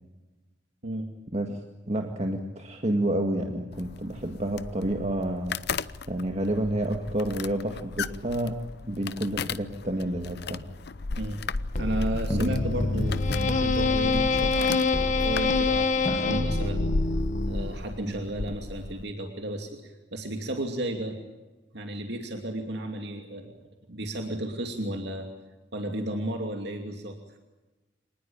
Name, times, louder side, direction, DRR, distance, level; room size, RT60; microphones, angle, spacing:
voice 1, 1.9-5.6 6.1-8.6 8.8-10.7 12.3-12.5, right 1 dB, 35° right, 4 dB, 1.9 m, -29 dB
sound 1, 3.7-19.0, left 3 dB, 60° left, 0.7 m, -36 dB
sound 2, 11.8-18.0, left 3 dB, 40° left, 1.4 m, -26 dB
voice 2, 11.8-16.9 17.5-21.2 21.7-23.6 23.9-25.3 25.7-27.2, right 1 dB, 60° right, 3 dB, 2.7 m, -33 dB
26.0 x 19.5 x 8.8 m, 1.2 s
head